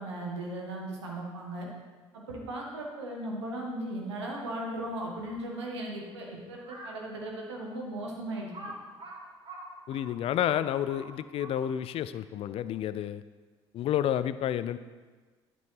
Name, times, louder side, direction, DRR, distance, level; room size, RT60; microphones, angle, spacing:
voice 1, 0.0-1.7 2.1-8.5, right 1 dB, 75° right, -1 dB, 1.6 m, -37 dB
Crow, 6.5-7.0 7.6-7.7 8.5-11.9, right 1 dB, 35° right, 2.1 m, -45 dB
voice 2, 9.9-13.2 13.7-14.8, left 11 dB, 40° left, 14 dB, 0.4 m, -30 dB
12.0 x 5.4 x 4.8 m, 1.4 s
figure-of-eight pair, 55°, 14 cm